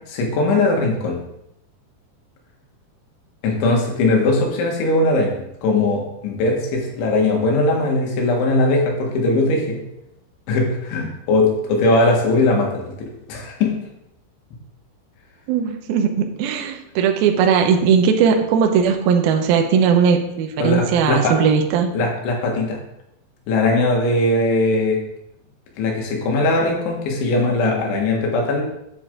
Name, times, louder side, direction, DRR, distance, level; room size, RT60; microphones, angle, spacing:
voice 1, 0.1-1.2 3.4-9.8 10.5-13.7 20.6-21.4 22.0-22.8 23.5-25.0 25.8-28.6, left 2 dB, 85° left, 0 dB, 4.1 m, -20 dB
voice 2, 15.5-21.9, right 7 dB, 70° right, 3 dB, 2.4 m, -18 dB
9.1 x 8.0 x 3.7 m, 0.82 s
omnidirectional pair, 5.2 m